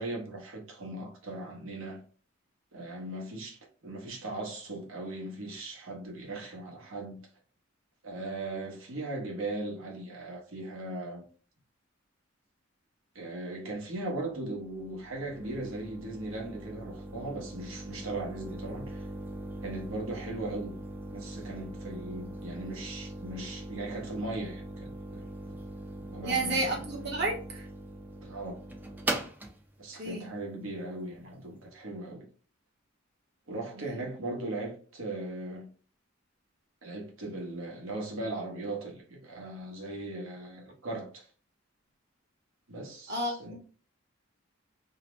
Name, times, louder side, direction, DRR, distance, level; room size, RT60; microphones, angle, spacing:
voice 1, 0.0-2.0 2.7-7.2 8.0-11.2 13.1-19.1 19.6-20.8 21.1-25.6 26.0-26.7 28.2-28.6 29.8-32.3 33.5-35.7 36.8-41.3 42.7-43.5, right 2 dB, 80° right, 0.9 m, -38 dB
sound 1, 14.0-31.6, right 1 dB, 10° right, 0.4 m, -41 dB
voice 2, 26.2-27.6 30.0-30.3 33.8-34.0 43.1-43.5, right 2 dB, 55° right, 0.9 m, -31 dB
2.7 x 2.0 x 2.9 m
head